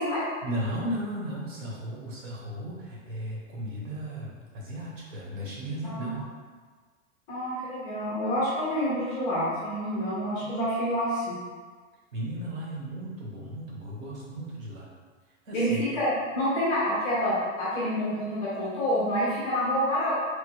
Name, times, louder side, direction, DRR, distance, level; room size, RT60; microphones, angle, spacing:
voice 1, 0.4-6.3 12.1-14.9 15.5-15.9, equal, 80° right, -4 dB, 1.2 m, -35 dB
voice 2, 5.9-6.2 7.3-11.4 15.5-20.1, equal, 15° left, -8 dB, 0.3 m, -28 dB
3.2 x 2.1 x 3.1 m, 1.5 s
supercardioid pair, 145°, 39 cm